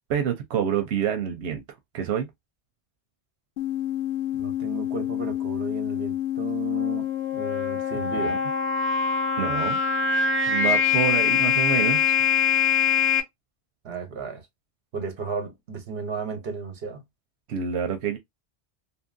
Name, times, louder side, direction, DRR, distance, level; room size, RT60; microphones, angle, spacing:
voice 1, 0.1-1.6 1.9-2.3 8.2-8.4 9.4-9.8 10.5-12.0 17.5-18.2, right 8 dB, 90° right, 0.9 m, -27 dB
sound 1, 3.6-13.2, left 7 dB, 85° left, 1.0 m, -24 dB
voice 2, 4.4-7.1 7.3-8.4 13.8-14.4 14.9-17.0, right 5 dB, 65° right, 1.1 m, -34 dB
2.7 x 2.6 x 2.5 m
omnidirectional pair, 1.1 m